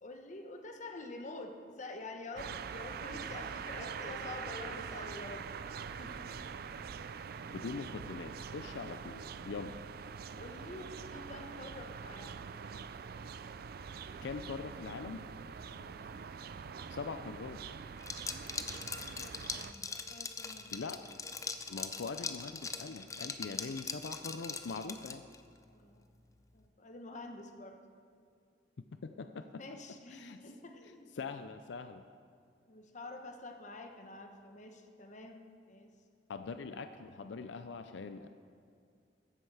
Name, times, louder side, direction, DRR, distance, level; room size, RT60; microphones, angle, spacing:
voice 1, 0.0-5.4 6.0-6.3 10.3-12.4 15.7-16.0 18.5-21.1 25.7-26.1 26.5-27.8 29.5-31.1 32.7-35.4 35.7-35.9, left 2 dB, 45° left, 4 dB, 1.1 m, -48 dB
sound 1, 2.4-19.7, right 6 dB, 55° right, 0.4 m, -44 dB
voice 2, 7.5-9.8 14.2-15.2 16.9-17.6 20.7-21.0 21.7-25.2 28.9-29.6 30.1-30.4 31.2-32.0 36.3-38.3, left 4 dB, 80° left, 9 dB, 0.5 m, -42 dB
Liquid, 18.0-25.4, left 4 dB, 20° left, 0.6 m, -41 dB
14.5 x 10.0 x 4.8 m, 2.3 s
head